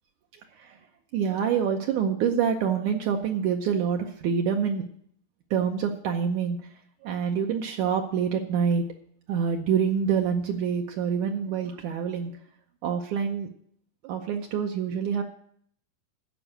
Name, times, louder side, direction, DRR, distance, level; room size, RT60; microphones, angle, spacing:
voice 1, 1.1-4.9 5.5-6.6 7.0-8.8 9.3-12.3 12.8-13.5 14.0-15.2, right 7 dB, 70° right, 3 dB, 2.0 m, -26 dB
14.0 x 5.4 x 8.8 m, 0.65 s
omnidirectional pair, 4.0 m